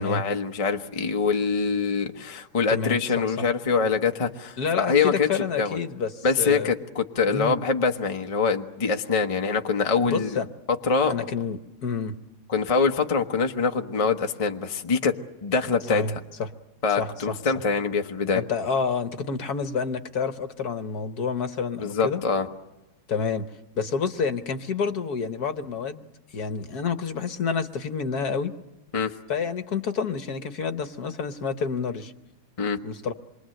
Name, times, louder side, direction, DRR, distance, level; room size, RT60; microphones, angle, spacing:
voice 1, 0.0-5.8 6.2-10.3 10.8-11.1 12.5-15.1 15.4-16.0 16.8-18.4 21.8-22.5 28.9-29.1 32.6-32.8, left 5 dB, 35° left, 5 dB, 0.5 m, -24 dB
voice 2, 4.6-6.7 7.3-7.6 10.0-10.5 11.1-12.1 15.9-16.1 16.4-16.5 17.0-17.4 18.3-22.2 23.1-23.5 23.8-26.0 26.3-28.5 29.3-32.1 32.8-33.1, left 5 dB, 55° left, 9 dB, 1.4 m, -28 dB
27.0 x 23.0 x 7.8 m, 1.0 s
omnidirectional pair, 2.4 m